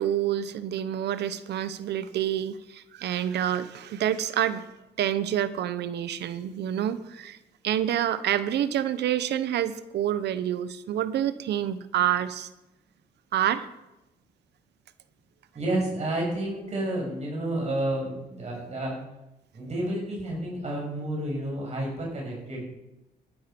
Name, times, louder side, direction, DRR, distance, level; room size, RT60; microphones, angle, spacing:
voice 1, 0.0-4.6 5.0-7.4 7.6-12.5 13.3-13.7, right 10 dB, 75° right, 13 dB, 1.0 m, -27 dB
voice 2, 15.5-19.0 19.5-22.6, right 1 dB, 40° right, -2 dB, 6.7 m, -30 dB
14.5 x 12.5 x 5.3 m, 0.93 s
cardioid pair, 100°, 17 cm